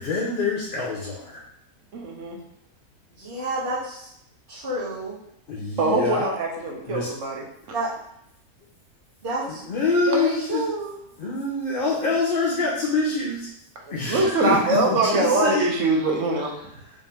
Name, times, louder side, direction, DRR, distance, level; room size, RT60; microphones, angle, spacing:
voice 1, 0.0-1.4 5.5-6.3 6.9-7.1 9.5-10.6 11.2-13.5 13.9-15.7, left 3 dB, 45° left, -6 dB, 0.8 m, -25 dB
voice 2, 1.9-2.4 5.8-7.4 13.9-16.7, right 2 dB, 60° right, 1 dB, 1.0 m, -23 dB
voice 3, 3.2-4.1 4.5-5.2 7.7-7.9 9.2-9.6 10.0-10.9, right 1 dB, 40° right, -14 dB, 1.6 m, -29 dB
5.2 x 2.6 x 3.5 m, 0.72 s
omnidirectional pair, 1.6 m